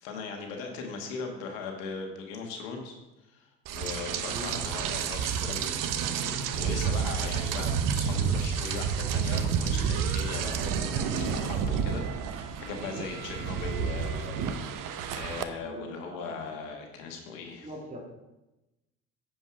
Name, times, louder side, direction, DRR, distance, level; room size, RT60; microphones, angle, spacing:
voice 1, 0.0-14.4 14.7-17.7, left 5 dB, 80° left, 2 dB, 1.7 m, -39 dB
Rain, 3.7-15.4, right 7 dB, 55° right, 0.9 m, -30 dB
voice 2, 15.5-16.4 17.6-18.0, right 1 dB, 20° right, -2 dB, 2.4 m, -42 dB
9.4 x 5.3 x 4.9 m, 1.0 s
hypercardioid pair, 70°, 39 cm